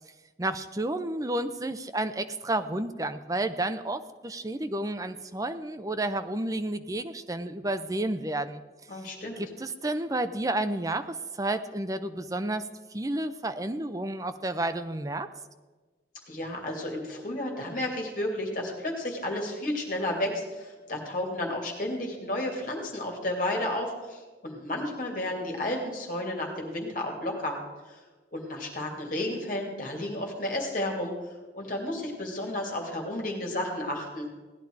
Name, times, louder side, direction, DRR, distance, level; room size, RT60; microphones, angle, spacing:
voice 1, 0.4-8.6 9.4-15.3, right 1 dB, 20° right, 9 dB, 0.6 m, -31 dB
voice 2, 8.9-9.4 16.3-27.6 27.9-28.0 28.3-31.1 31.5-34.3, left 1 dB, 50° left, 1 dB, 2.6 m, -32 dB
16.5 x 10.0 x 4.7 m, 1.3 s
head